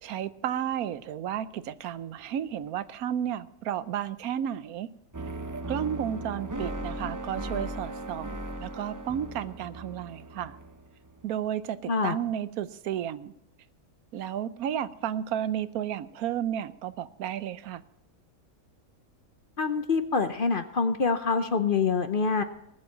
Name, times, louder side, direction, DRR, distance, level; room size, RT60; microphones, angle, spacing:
voice 1, 0.0-4.9 5.7-10.6 11.2-13.3 14.1-17.8, right 10 dB, 80° right, 15 dB, 1.2 m, -32 dB
sound 1, 5.1-11.2, right 1 dB, 25° right, 0.4 m, -37 dB
voice 2, 11.9-12.2 19.6-22.4, left 4 dB, 45° left, 9 dB, 0.8 m, -25 dB
19.0 x 7.6 x 7.2 m, 0.78 s
omnidirectional pair, 1.5 m